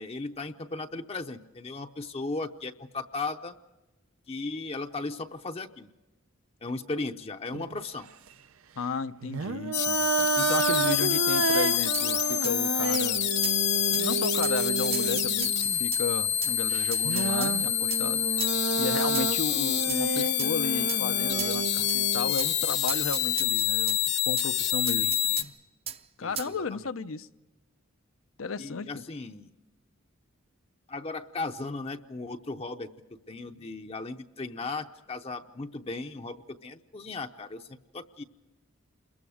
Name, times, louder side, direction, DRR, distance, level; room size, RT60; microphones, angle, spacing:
voice 1, 0.0-3.5 4.3-5.9 6.6-8.1 25.0-25.4 26.2-26.8 28.6-29.5 30.9-32.9 33.3-38.2, left 3 dB, 30° left, 0.6 m, -36 dB
sound 1, 7.5-7.8 9.2-15.8 16.7-22.3, right 5 dB, 90° right, 0.7 m, -31 dB
voice 2, 8.8-13.3 13.9-18.5 18.7-25.5 26.2-27.3 28.4-29.0, left 4 dB, 80° left, 0.7 m, -34 dB
sound 2, 9.7-25.4, left 11 dB, 55° left, 1.0 m, -27 dB
sound 3, 11.9-12.1 12.4-12.6 12.9-13.1 13.4-13.6 13.9-14.0 14.4-14.6 14.9-16.0 16.4-16.5 16.9-17.5 17.9-18.0 18.4-18.6 19.1-19.4 19.9-20.0 20.4-20.5 20.9-21.0 21.4-21.6 21.9-22.0 22.4-22.5 22.9-24.0 24.4-24.5 24.9-25.5 25.9-26.0 26.4-26.5, right 9 dB, 30° right, 0.6 m, -36 dB
28.0 x 22.0 x 4.9 m
head